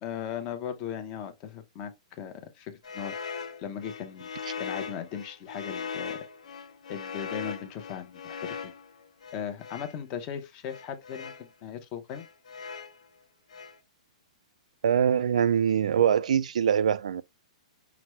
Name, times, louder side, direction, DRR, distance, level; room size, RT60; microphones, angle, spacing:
voice 1, 0.0-4.3 4.6-6.2 6.9-8.7 9.3-12.3, left 8 dB, 20° left, 0.6 m, -38 dB
sound 1, 2.8-10.0 10.7-11.5 12.1-13.0 13.5-13.8, left 6 dB, 75° left, 0.9 m, -39 dB
voice 2, 14.8-17.2, right 8 dB, 80° right, 0.3 m, -23 dB
5.8 x 2.1 x 3.0 m
hypercardioid pair, 175°, 4 cm